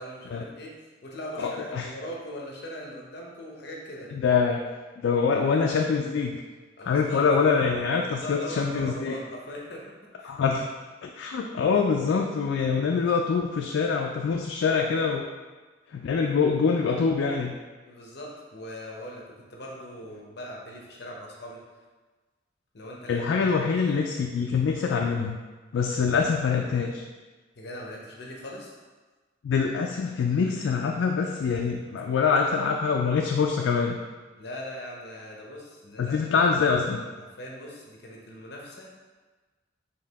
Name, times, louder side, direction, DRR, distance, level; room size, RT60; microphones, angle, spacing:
voice 1, 0.0-4.1 6.8-7.2 8.0-10.3 17.9-21.6 22.7-24.0 27.5-28.7 34.4-36.1 37.4-38.9, equal, 60° left, -2 dB, 0.8 m, -40 dB
voice 2, 1.4-1.9 4.1-4.6 5.0-6.4 6.8-9.2 10.2-10.7 11.0-15.3 15.9-17.5 23.1-25.4 25.7-27.0 29.4-34.0 36.0-37.0, left 5 dB, 80° left, 1 dB, 0.3 m, -24 dB
4.7 x 2.8 x 3.4 m, 1.3 s
head